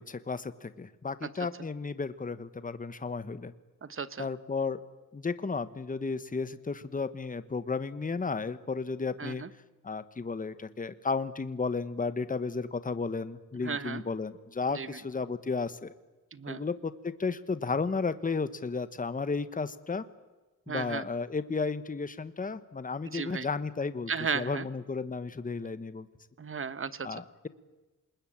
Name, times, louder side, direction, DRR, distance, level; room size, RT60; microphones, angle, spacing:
voice 1, 0.0-3.5 4.2-4.8 5.1-9.4 9.8-15.9 16.5-20.0 20.7-26.1 27.0-27.5, left 4 dB, 25° left, 13 dB, 1.1 m, -33 dB
voice 2, 3.8-4.3 9.2-9.5 13.6-14.0 14.7-15.0 16.3-16.6 20.7-21.1 23.0-23.5 24.1-24.7 26.4-27.2, right 5 dB, 35° right, 16 dB, 1.1 m, -35 dB
27.5 x 20.5 x 8.8 m, 1.1 s
wide cardioid pair, 145°, 34 cm